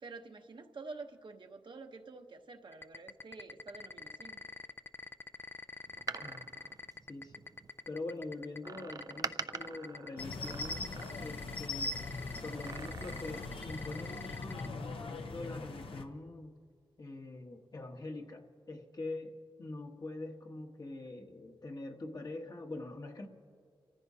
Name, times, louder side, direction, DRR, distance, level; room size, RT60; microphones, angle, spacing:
voice 1, 0.0-4.4, right 3 dB, 60° right, 4 dB, 0.9 m, -48 dB
sound 1, 2.7-14.7, left 3 dB, 25° left, 0.4 m, -45 dB
Door, 5.9-7.7 8.6-11.5 12.4-13.6 13.9-14.0, right 5 dB, 40° right, 0.4 m, -44 dB
voice 2, 7.9-10.9 11.2-12.0 12.4-16.6 17.0-23.3, left 2 dB, 45° left, 3 dB, 1.2 m, -44 dB
sound 2, 10.2-16.0, left 3 dB, 75° left, 0.9 m, -41 dB
29.5 x 14.5 x 2.8 m, 2.1 s
wide cardioid pair, 90°, 9 cm